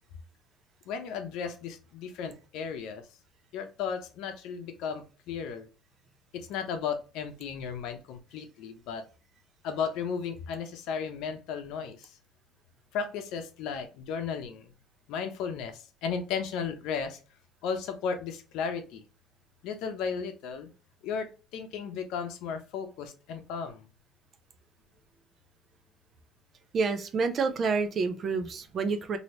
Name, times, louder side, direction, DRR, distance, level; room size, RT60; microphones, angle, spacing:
voice 1, 0.9-3.0 3.5-5.7 6.5-9.0 9.6-12.0 12.9-14.6 15.1-15.7 16.0-17.2 17.6-19.0 19.6-20.7 21.0-21.3 21.5-23.8, left 6 dB, 75° left, 7 dB, 0.7 m, -34 dB
voice 2, 26.7-29.2, right 4 dB, 40° right, 8 dB, 0.5 m, -28 dB
2.8 x 2.7 x 3.1 m, 0.35 s
cardioid pair, 130°, 0 cm